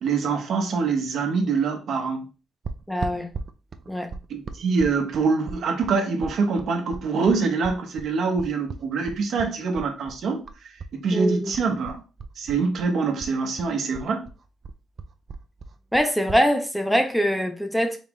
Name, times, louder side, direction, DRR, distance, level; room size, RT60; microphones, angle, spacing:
voice 1, 0.0-2.3 4.3-10.4 10.9-12.0 12.4-14.3, right 4 dB, 65° right, 0.9 m, -24 dB
sound 1, 2.6-10.9 11.2-12.9 13.2-16.4, right 4 dB, 45° right, 0.4 m, -37 dB
voice 2, 2.9-3.3 3.9-4.1 11.1-11.6 15.9-18.0, equal, 5° left, 0.6 m, -23 dB
4.2 x 2.4 x 3.5 m
cardioid pair, 90°, 0 cm